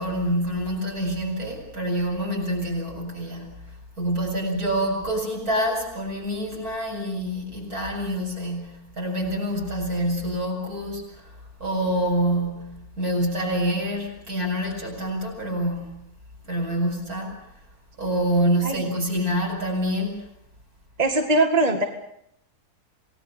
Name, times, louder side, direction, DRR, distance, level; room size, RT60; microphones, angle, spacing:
voice 1, 0.0-11.3 11.6-16.1 16.5-17.5 18.0-20.3, right 1 dB, 65° right, 7.9 m, -27 dB
voice 2, 21.0-21.8, right 2 dB, 25° right, 2.0 m, -20 dB
28.5 x 19.0 x 7.1 m
omnidirectional pair, 1.6 m